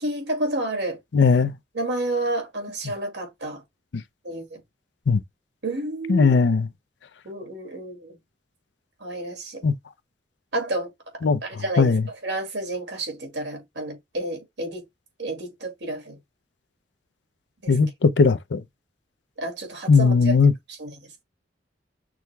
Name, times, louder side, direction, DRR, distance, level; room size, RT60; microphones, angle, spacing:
voice 1, 0.0-1.0 1.7-3.6 4.2-4.6 5.6-6.4 7.2-8.2 9.0-9.6 10.5-10.9 11.4-14.8 15.2-16.2 17.6-17.8 19.4-20.4 20.7-20.9, right 1 dB, 80° right, 2.2 m, -30 dB
voice 2, 1.1-1.5 5.1-5.2 6.1-6.7 9.6-9.7 11.2-11.4 11.8-12.0 17.7-18.6 19.9-20.5, left 4 dB, 75° left, 0.5 m, -18 dB
6.2 x 2.2 x 3.3 m
head